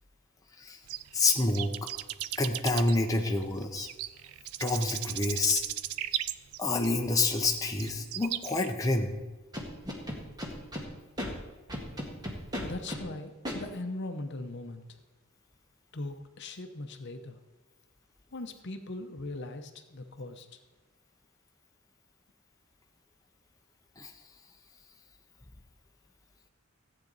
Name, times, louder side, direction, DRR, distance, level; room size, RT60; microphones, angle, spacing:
sound 1, 0.9-8.7, right 13 dB, 85° right, 0.4 m, -37 dB
voice 1, 1.1-1.7 2.4-3.9 4.6-5.6 6.6-9.1 24.0-24.1, left 2 dB, 15° left, 1 dB, 0.8 m, -27 dB
Scratching (performance technique), 9.5-10.8 11.2-11.3 11.7-13.0 13.5-13.6, equal, 20° right, 1.7 m, -35 dB
voice 2, 12.6-14.8 15.9-17.4 18.3-20.6, left 2 dB, 55° left, 6 dB, 0.8 m, -40 dB
15.0 x 8.7 x 4.0 m, 1.2 s
head